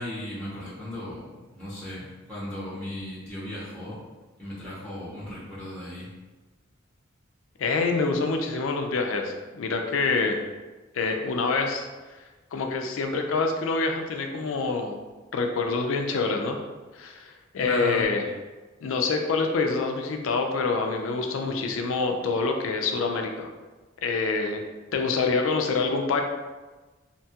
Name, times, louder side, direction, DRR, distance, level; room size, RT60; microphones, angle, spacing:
voice 1, 0.0-4.0 4.4-6.1 17.6-18.1, left 1 dB, 5° left, -8 dB, 0.6 m, -36 dB
voice 2, 7.6-10.4 10.9-11.9 12.5-15.0 15.3-16.6 16.9-18.2 18.8-23.5 24.0-24.6 24.9-26.2, left 4 dB, 75° left, 3 dB, 0.4 m, -26 dB
2.8 x 2.2 x 2.7 m, 1.2 s
head